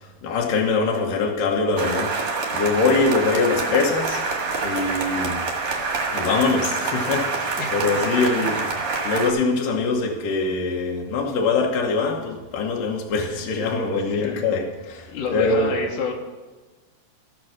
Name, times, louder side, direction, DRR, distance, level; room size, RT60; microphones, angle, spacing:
voice 1, 0.2-2.1 2.5-4.2 4.6-5.4 6.1-8.7 9.0-15.8, left 4 dB, 65° left, 0 dB, 2.4 m, -23 dB
sound 1, 1.8-9.3, right 4 dB, 45° right, 1.9 m, -26 dB
voice 2, 7.6-8.7 14.2-14.5 15.1-16.1, left 5 dB, 90° left, 0 dB, 3.5 m, -30 dB
15.0 x 6.2 x 6.3 m, 1.3 s
omnidirectional pair, 4.7 m